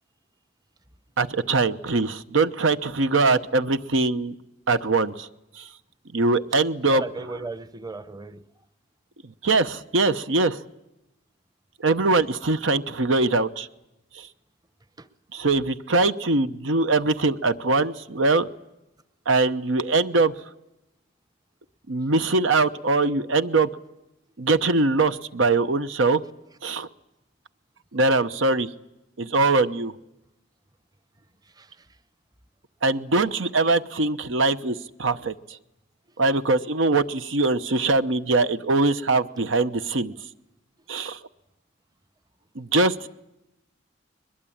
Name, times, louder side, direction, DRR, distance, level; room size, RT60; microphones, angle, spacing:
voice 1, 1.2-4.3 4.7-5.3 5.6-5.7 6.1-7.0 9.4-10.6 11.8-13.7 14.1-14.3 15.3-18.5 19.3-20.3 21.9-23.7 24.4-26.2 26.6-26.9 27.9-28.7 29.2-29.9 32.8-35.3 36.2-40.1 40.9-41.2 42.6-43.1, right 3 dB, 85° right, 12 dB, 0.9 m, -22 dB
voice 2, 6.9-8.4 15.0-15.1 31.6-31.8, right 3 dB, 20° right, 14 dB, 0.9 m, -36 dB
22.0 x 21.5 x 8.7 m, 0.91 s
head